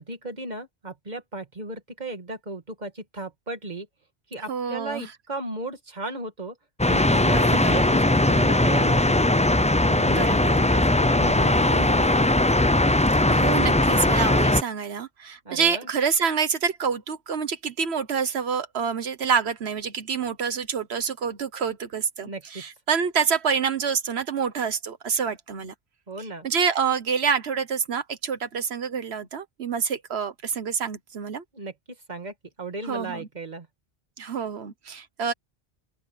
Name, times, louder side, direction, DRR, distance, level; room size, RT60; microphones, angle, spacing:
voice 1, 0.0-3.9 4.3-6.6 6.9-9.2 9.8-10.2 10.7-12.3 15.5-15.9 22.2-22.6 26.1-26.5 31.5-33.7, right 2 dB, 45° right, 2.3 m, -35 dB
voice 2, 4.5-5.1 7.2-7.8 10.1-10.7 13.3-25.7 26.4-31.4 32.8-33.3 34.2-35.3, right 6 dB, 85° right, 1.4 m, -27 dB
sound 1, 6.8-14.6, left 1 dB, 10° left, 0.4 m, -20 dB
open air
omnidirectional pair, 1.0 m